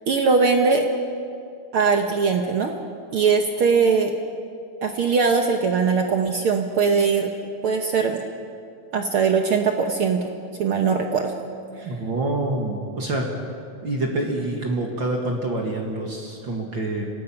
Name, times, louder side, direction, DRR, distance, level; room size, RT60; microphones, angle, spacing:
voice 1, 0.1-0.9 1.7-2.7 3.1-4.1 4.8-7.3 7.6-8.2 8.9-10.2 10.6-11.3, right 5 dB, 75° right, 4 dB, 1.2 m, -20 dB
voice 2, 11.8-13.3 13.8-17.1, right 2 dB, 40° right, 0 dB, 2.1 m, -26 dB
26.0 x 18.0 x 5.8 m, 2.5 s
omnidirectional pair, 3.8 m